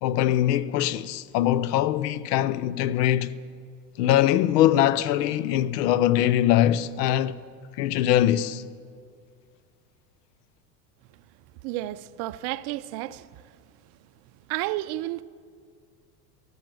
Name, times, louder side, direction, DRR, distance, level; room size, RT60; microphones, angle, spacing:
voice 1, 0.0-3.3 4.0-7.4 7.8-8.6, left 12 dB, 75° left, 0.7 m, -22 dB
voice 2, 11.6-13.4 14.5-15.2, right 16 dB, 50° right, 0.6 m, -31 dB
13.5 x 13.0 x 7.8 m
hypercardioid pair, 100°, 48 cm